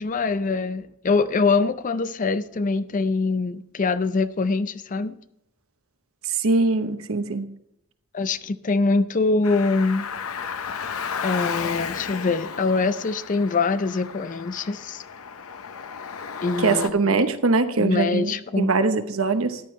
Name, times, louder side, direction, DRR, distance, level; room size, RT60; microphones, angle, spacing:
voice 1, 0.0-5.2 8.1-10.1 11.2-15.0 16.4-17.2 17.8-18.7, left 3 dB, 40° left, 0.5 m, -24 dB
voice 2, 6.3-7.5 16.6-18.3 18.6-19.6, right 3 dB, 75° right, 0.9 m, -22 dB
Car, 9.4-16.9, left 6 dB, 85° left, 0.7 m, -33 dB
14.0 x 10.5 x 3.2 m
head